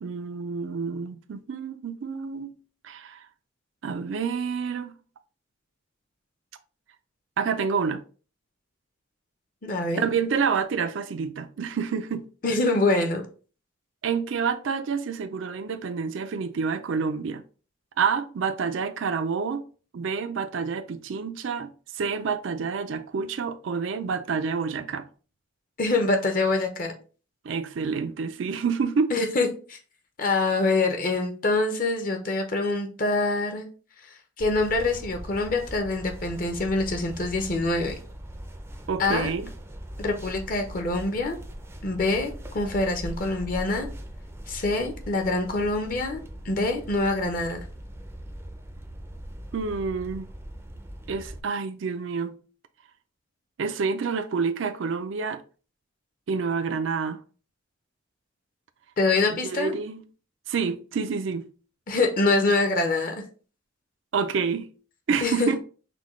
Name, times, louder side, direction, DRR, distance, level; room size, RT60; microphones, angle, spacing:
voice 1, 0.0-2.5 2.8-3.3 3.8-4.9 7.4-8.0 10.0-12.2 14.0-17.4 18.0-19.6 19.9-25.1 27.4-29.1 38.9-39.5 49.5-50.3 51.1-52.3 53.6-55.4 56.3-57.2 59.3-60.0 60.5-61.4 64.1-64.7 65.1-65.6, right 5 dB, 70° right, 0.4 m, -28 dB
voice 2, 9.6-10.0 12.4-13.2 25.8-26.9 29.1-29.8 30.2-33.7 34.4-38.0 39.0-39.3 40.0-41.4 41.8-43.9 44.5-47.6 59.0-59.7 61.9-63.2 65.2-65.5, left 2 dB, 45° left, 0.6 m, -25 dB
sound 1, 34.4-51.4, equal, 10° right, 0.4 m, -40 dB
5.9 x 2.2 x 3.0 m
head